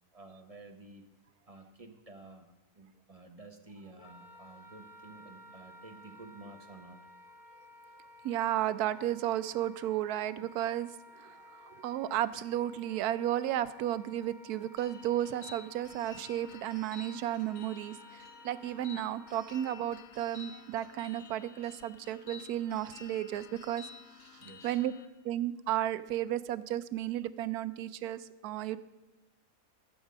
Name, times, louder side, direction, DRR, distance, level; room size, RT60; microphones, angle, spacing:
voice 1, 0.1-1.0 1.5-7.0 24.4-24.8, right 2 dB, 35° right, 5 dB, 0.7 m, -52 dB
Wind instrument woodwind instrument, 4.0-20.0, left 2 dB, 35° left, 1.0 m, -55 dB
voice 2, 8.2-10.9 11.2-23.8 24.6-24.9 25.2-28.8, right 12 dB, 90° right, 14 dB, 1.1 m, -33 dB
sound 1, 14.8-25.1, left 5 dB, 65° left, 1.3 m, -52 dB
14.5 x 7.1 x 5.2 m, 1.1 s
omnidirectional pair, 1.6 m